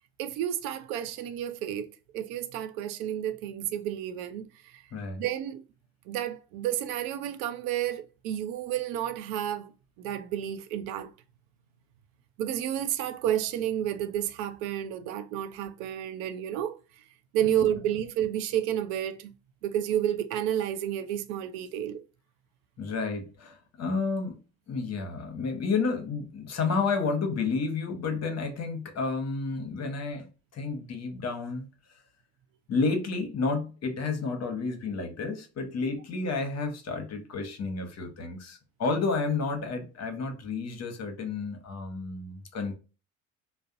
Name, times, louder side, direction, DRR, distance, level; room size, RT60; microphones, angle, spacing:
voice 1, 0.2-4.8 5.2-5.6 6.1-9.7 10.0-11.1 12.4-16.8 17.3-19.3 19.6-22.0, right 11 dB, 75° right, 0.5 m, -31 dB
voice 2, 4.9-5.2 17.4-17.7 22.8-24.4 24.7-31.7 32.7-42.8, left 4 dB, 40° left, 0.8 m, -31 dB
2.6 x 2.1 x 2.4 m
hypercardioid pair, 65°, 42 cm